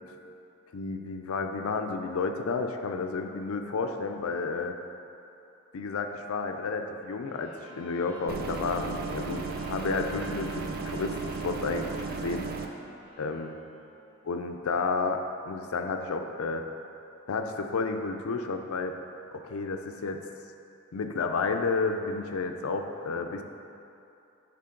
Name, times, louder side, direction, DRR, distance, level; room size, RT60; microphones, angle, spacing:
voice 1, 0.7-4.8 5.7-12.5 13.2-13.6 14.3-16.6 17.3-18.9 19.3-20.3 20.9-23.4, left 4 dB, 85° left, 5 dB, 0.5 m, -31 dB
sound 1, 7.2-14.3, right 1 dB, 25° right, 1.5 m, -51 dB
sound 2, 7.5-12.4, right 1 dB, 55° left, 0.9 m, -49 dB
sound 3, 8.3-12.7, right 4 dB, 45° right, 0.4 m, -35 dB
10.0 x 3.5 x 3.8 m, 2.8 s
head